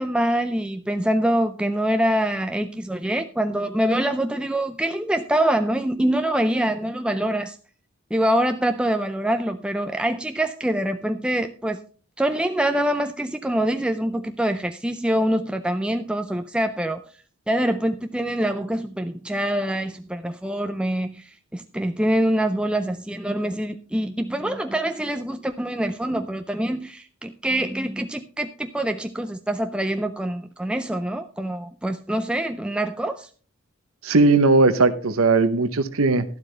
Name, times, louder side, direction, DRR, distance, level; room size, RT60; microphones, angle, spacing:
voice 1, 0.0-7.6 8.1-11.8 12.2-17.0 17.5-33.3, right 1 dB, 5° right, 7 dB, 0.4 m, -25 dB
voice 2, 34.0-36.2, right 3 dB, 80° right, 10 dB, 0.9 m, -18 dB
12.0 x 11.5 x 3.3 m, 0.39 s
head